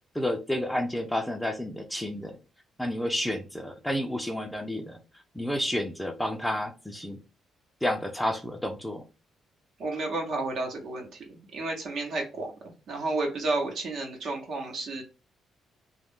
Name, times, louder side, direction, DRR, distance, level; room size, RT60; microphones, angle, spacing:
voice 1, 0.1-2.4 2.8-5.0 5.3-7.2 7.8-9.0, left 1 dB, 5° left, 4 dB, 0.5 m, -30 dB
voice 2, 9.8-15.0, right 2 dB, 65° right, 2 dB, 1.0 m, -32 dB
2.4 x 2.1 x 3.6 m, 0.31 s
cardioid pair, 90°, 0 cm